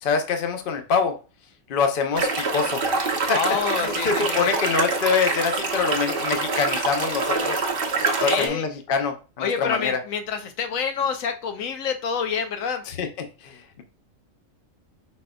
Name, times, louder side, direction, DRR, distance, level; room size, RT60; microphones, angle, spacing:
voice 1, 0.0-1.2 1.7-2.9 3.2-3.4 3.8-7.7 8.2-10.0 12.9-13.1 13.4-13.8, left 5 dB, 50° left, 6 dB, 0.8 m, -25 dB
sound 1, 2.1-8.5, right 3 dB, 50° right, 0.9 m, -25 dB
voice 2, 3.3-4.5 8.2-8.6 9.4-12.8, left 6 dB, 90° left, 6 dB, 1.1 m, -27 dB
4.9 x 4.2 x 2.2 m, 0.32 s
omnidirectional pair, 1.4 m